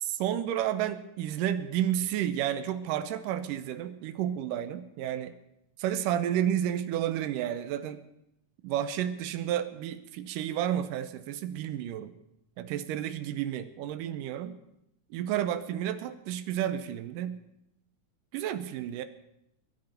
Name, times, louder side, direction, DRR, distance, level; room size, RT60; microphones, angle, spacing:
voice 1, 0.0-5.3 5.8-8.0 8.6-12.1 12.6-14.6 15.1-17.4 18.3-19.0, right 11 dB, 85° right, 10 dB, 2.4 m, -31 dB
23.0 x 11.5 x 4.3 m, 0.80 s
omnidirectional pair, 3.8 m